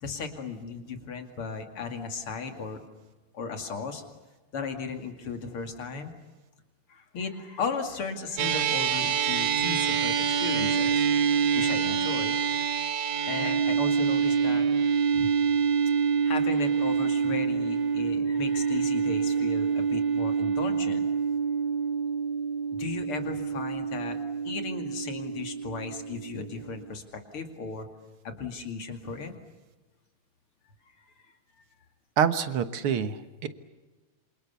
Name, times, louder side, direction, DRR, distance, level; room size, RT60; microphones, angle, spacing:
voice 1, 0.0-2.8 3.3-4.0 4.5-6.1 6.9-11.1 11.5-12.4 13.3-14.6 15.1-15.3 16.2-21.1 22.7-24.2 24.4-27.9 28.2-29.3 31.6-31.7, left 5 dB, 85° left, 5 dB, 3.3 m, -36 dB
sound 1, 8.4-26.9, right 6 dB, 55° right, 1.4 m, -26 dB
voice 2, 32.2-33.5, right 8 dB, 85° right, 10 dB, 2.2 m, -26 dB
27.5 x 26.5 x 7.1 m, 1.2 s
omnidirectional pair, 2.3 m